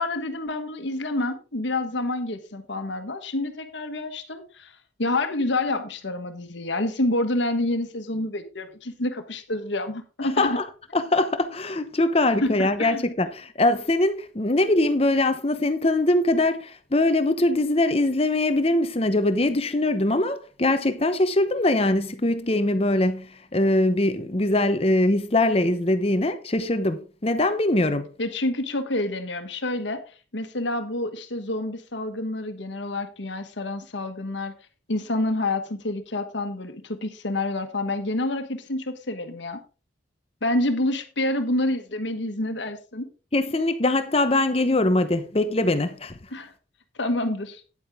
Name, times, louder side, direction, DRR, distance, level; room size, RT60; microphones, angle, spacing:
voice 1, 0.0-10.6 12.4-13.1 28.2-30.0 30.3-34.5 34.9-39.6 40.4-43.1 46.3-46.5 47.0-47.6, left 2 dB, 70° left, 1.4 m, -28 dB
voice 2, 10.2-10.6 10.9-28.1 43.3-46.1, left 2 dB, 30° left, 0.8 m, -22 dB
9.8 x 8.8 x 3.6 m
head